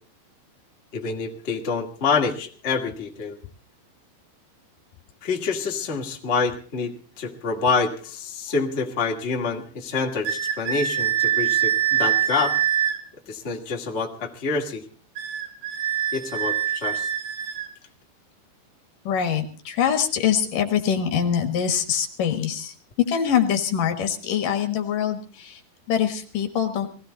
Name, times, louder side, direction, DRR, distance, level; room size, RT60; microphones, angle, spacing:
voice 1, 0.9-3.4 5.2-12.6 13.3-14.8 16.1-17.1, left 4 dB, 75° left, 1 dB, 0.6 m, -27 dB
sound 1, 10.2-13.0 15.2-17.7, right 10 dB, 55° right, 3.0 m, -24 dB
voice 2, 19.1-22.7 23.1-25.6 25.9-26.9, left 8 dB, 60° left, 6 dB, 2.7 m, -24 dB
20.0 x 15.5 x 4.0 m, 0.39 s
omnidirectional pair, 5.1 m